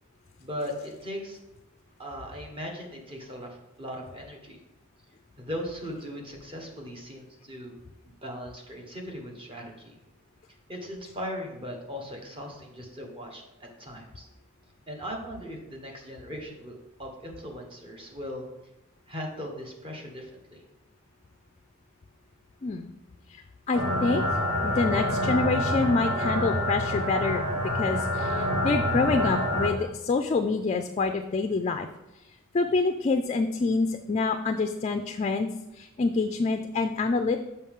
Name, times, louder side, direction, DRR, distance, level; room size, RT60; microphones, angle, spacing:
voice 1, 0.4-1.4 2.0-4.6 5.4-10.0 10.7-14.3 14.9-18.4 19.1-20.6, equal, 25° right, 1 dB, 1.3 m, -39 dB
voice 2, 23.7-24.2 24.6-27.4 27.7-31.9 32.5-37.4, left 3 dB, 30° left, 7 dB, 0.3 m, -27 dB
sound 1, 23.7-29.7, left 1 dB, 80° right, 2.0 m, -27 dB
6.9 x 5.5 x 3.7 m, 0.93 s
head